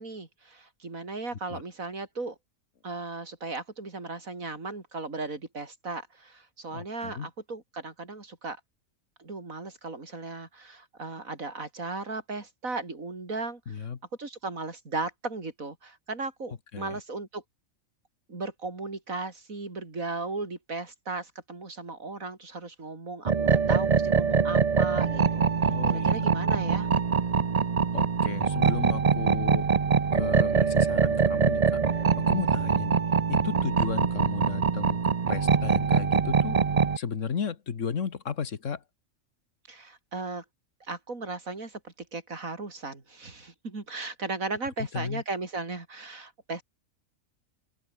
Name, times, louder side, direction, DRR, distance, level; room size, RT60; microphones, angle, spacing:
voice 1, 0.0-2.4 2.8-8.6 9.2-13.8 14.2-17.4 18.3-25.4 25.9-26.9 39.7-40.4 40.9-46.6, right 3 dB, 85° right, 4.1 m, -36 dB
voice 2, 6.7-7.3 13.7-14.0 16.7-17.0 25.6-26.3 27.9-29.7 30.1-31.8 32.2-33.0 33.3-36.6 37.0-38.8 44.8-45.2, left 6 dB, 65° left, 1.7 m, -34 dB
sound 1, 23.2-37.0, right 5 dB, 35° right, 0.8 m, -24 dB
open air
omnidirectional pair, 1.4 m